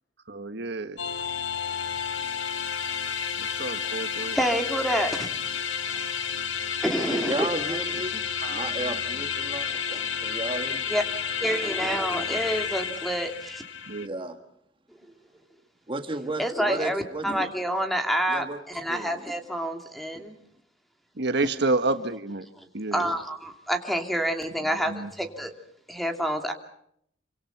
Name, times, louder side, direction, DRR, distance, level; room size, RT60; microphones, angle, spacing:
voice 1, 0.3-1.0 3.4-4.4 8.4-9.0 13.9-14.1 21.2-22.5 22.7-23.1 24.9-25.1, right 2 dB, 65° right, 9 dB, 1.5 m, -29 dB
sound 1, 1.0-14.1, left 7 dB, 85° left, 1.6 m, -31 dB
voice 2, 4.3-5.3 6.8-7.5 10.9-11.0 11.4-13.6 16.4-18.4 18.7-20.4 22.9-25.5 25.9-26.5, equal, ahead, 5 dB, 2.6 m, -28 dB
voice 3, 7.1-8.2 8.5-10.9 14.0-14.4 15.9-17.5 18.3-18.6 18.9-19.2, right 2 dB, 30° right, 6 dB, 1.7 m, -33 dB
27.5 x 25.0 x 5.9 m, 0.70 s
head